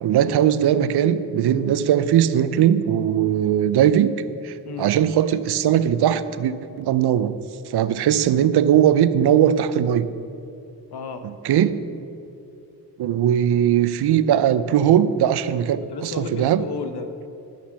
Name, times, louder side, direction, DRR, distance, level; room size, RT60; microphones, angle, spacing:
voice 1, 0.0-4.1 4.4-7.3 7.7-10.1 11.4-11.8 13.0-16.6, right 10 dB, 85° right, 14 dB, 0.6 m, -19 dB
voice 2, 10.9-11.2 15.9-17.3, left 5 dB, 85° left, 8 dB, 1.0 m, -33 dB
10.5 x 7.4 x 7.0 m, 2.7 s
wide cardioid pair, 95°, 38 cm